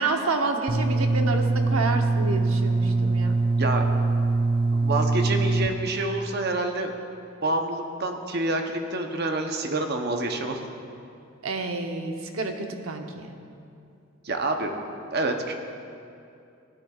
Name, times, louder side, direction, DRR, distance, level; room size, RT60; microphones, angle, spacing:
voice 1, 0.0-3.3 11.4-13.3, right 3 dB, 85° right, 4 dB, 0.9 m, -29 dB
sound 1, 0.7-5.7, right 3 dB, 25° right, 0.4 m, -23 dB
voice 2, 4.7-6.9 7.4-10.6 14.2-14.7 15.1-15.5, right 2 dB, 50° right, 4 dB, 0.8 m, -27 dB
16.5 x 10.0 x 2.4 m, 2.5 s
head